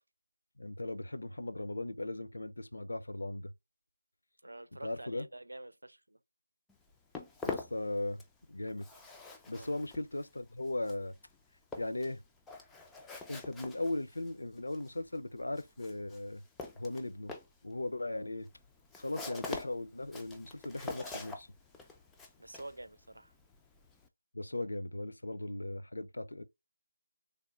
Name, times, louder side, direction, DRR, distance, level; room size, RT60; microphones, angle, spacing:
voice 1, 0.6-3.5 4.8-5.3 7.4-8.2 8.5-8.9 9.5-11.1 11.8-12.2 13.3-16.4 16.8-17.3 17.6-18.5 19.0-21.5 24.3-26.4, left 2 dB, 65° left, 0.6 m, -38 dB
voice 2, 4.4-6.2 9.5-9.8 22.4-23.3, right 2 dB, 75° right, 0.6 m, -48 dB
Walk footsteps, 6.7-8.4 8.7-24.1, left 3 dB, 5° left, 0.3 m, -45 dB
3.5 x 2.1 x 3.7 m
figure-of-eight pair, 160°, 0 cm